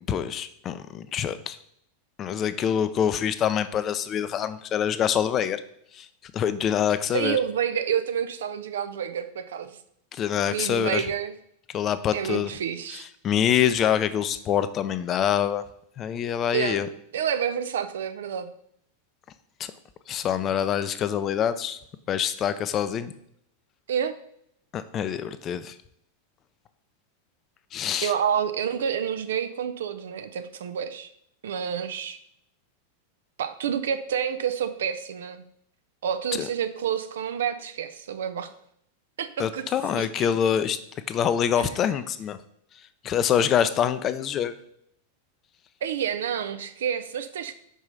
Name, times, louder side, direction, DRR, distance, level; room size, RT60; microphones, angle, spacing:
voice 1, 0.1-1.6 2.2-5.6 5.9-6.1 6.3-7.4 10.1-11.1 11.7-12.5 13.2-15.6 16.0-16.9 19.6-19.7 20.1-21.8 22.1-23.1 24.7-25.7 27.7-28.1 36.4-36.5 39.4-40.8 41.1-42.4 43.0-44.5, left 9 dB, 30° left, 12 dB, 0.5 m, -25 dB
voice 2, 7.1-9.8 10.5-11.3 12.1-13.1 16.5-16.8 17.1-18.5 23.9-24.1 28.0-31.1 31.4-32.2 33.4-35.4 36.0-38.5 39.2-39.6 39.9-40.3 45.8-47.5, right 8 dB, 60° right, 10 dB, 0.6 m, -29 dB
5.5 x 4.8 x 5.3 m, 0.69 s
figure-of-eight pair, 90°, 0 cm